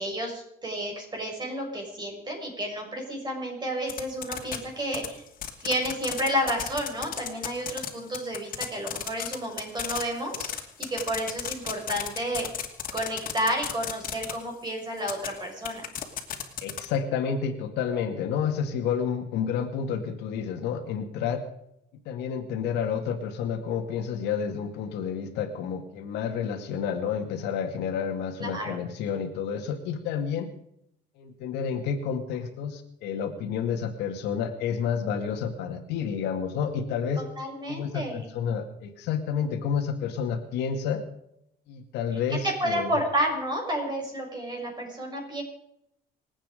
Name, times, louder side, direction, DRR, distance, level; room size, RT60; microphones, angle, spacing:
voice 1, 0.0-5.2 5.6-10.5 10.8-12.5 12.9-15.8 28.4-28.8 37.2-38.3 42.3-45.4, equal, 25° right, 1 dB, 6.4 m, -31 dB
sound 1, 3.9-4.6 4.9-14.3 15.0-15.3 15.7-16.9, left 10 dB, 55° left, 2.5 m, -32 dB
voice 2, 16.6-21.4 22.1-30.5 31.2-37.2 37.7-41.0 41.7-42.9, left 7 dB, 90° left, 6 dB, 2.1 m, -30 dB
26.5 x 8.9 x 5.1 m, 0.76 s
cardioid pair, 110°, 17 cm